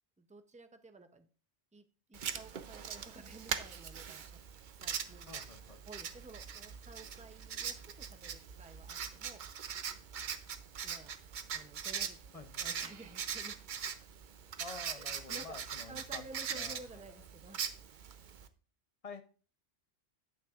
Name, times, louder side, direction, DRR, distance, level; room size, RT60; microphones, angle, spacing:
voice 1, 0.2-1.3 1.7-4.4 4.7-5.4 5.8-9.7 10.8-11.1 11.5-13.6 14.9-17.7, right 2 dB, 10° right, 8 dB, 0.4 m, -53 dB
Writing, 2.1-18.5, right 7 dB, 50° right, 0.7 m, -42 dB
voice 2, 5.3-5.8 12.3-12.7 14.6-16.8 17.1-17.2 19.0-19.2, left 4 dB, 35° left, 9 dB, 0.7 m, -49 dB
10.5 x 8.8 x 2.4 m, 0.40 s
omnidirectional pair, 1.2 m